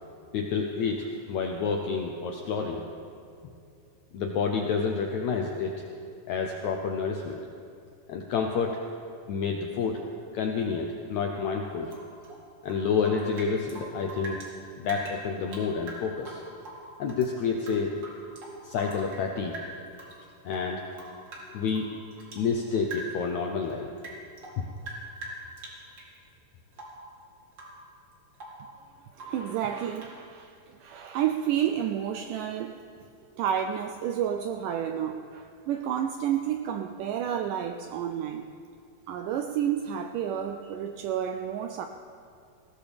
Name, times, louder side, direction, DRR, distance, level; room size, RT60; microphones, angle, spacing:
voice 1, 0.3-2.8 4.1-5.7 6.3-7.4 8.1-8.8 9.3-10.0 10.3-12.0 12.6-14.4 14.8-16.4 17.0-17.9 18.6-19.6 20.4-20.8 21.5-21.9 22.4-23.9 24.6-24.7, left 5 dB, 80° left, 2 dB, 1.7 m, -29 dB
Rain / Drip, 11.9-14.5 14.8-17.3 17.6-19.3 19.5-20.2 20.5-22.5 22.8-23.3 23.6-26.1 26.7-27.1 27.5-27.8 28.1-28.7 29.1-29.5 30.0-30.2, right 1 dB, 35° right, 2.3 m, -43 dB
voice 2, 29.2-32.8 33.4-38.5 39.1-41.9, right 9 dB, 85° right, 6 dB, 1.9 m, -30 dB
20.0 x 16.5 x 3.5 m, 2.4 s
omnidirectional pair, 4.3 m